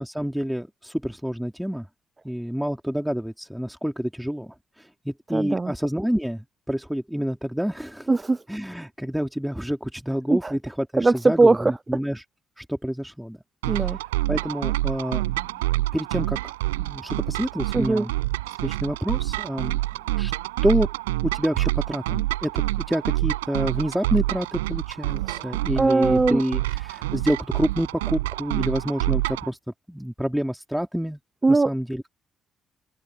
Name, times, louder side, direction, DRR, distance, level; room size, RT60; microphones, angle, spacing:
voice 1, 0.0-1.9 2.2-8.1 8.5-12.2 12.6-13.4 13.7-13.8 14.3-16.5 16.8-18.1 18.6-19.8 20.1-20.3 20.6-20.9 21.3-22.6 22.9-29.6 29.9-31.2 31.5-32.1, equal, 5° right, 3.2 m, -28 dB
voice 2, 5.3-5.7 8.1-8.4 10.3-10.5 10.9-11.8 13.7-14.0 17.7-18.1 25.2-25.4 25.8-26.4 31.4-31.7, right 3 dB, 25° right, 1.1 m, -20 dB
sound 1, 13.6-29.5, right 18 dB, 85° right, 5.3 m, -27 dB
hypercardioid pair, 45°, 0 cm